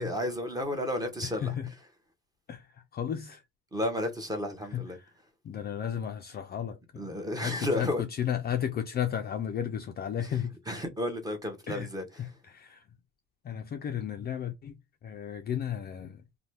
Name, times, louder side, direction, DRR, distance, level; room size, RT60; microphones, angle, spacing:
voice 1, 0.0-1.5 3.7-5.0 7.0-8.0 10.7-12.1, left 1 dB, 10° right, 0.8 m, -32 dB
voice 2, 1.2-1.7 2.5-3.4 4.7-5.1 5.4-10.5 11.7-11.9 12.2-12.8 13.4-14.7 15.0-16.2, left 9 dB, 30° left, 0.4 m, -34 dB
2.7 x 2.2 x 3.2 m
cardioid pair, 125°, 33 cm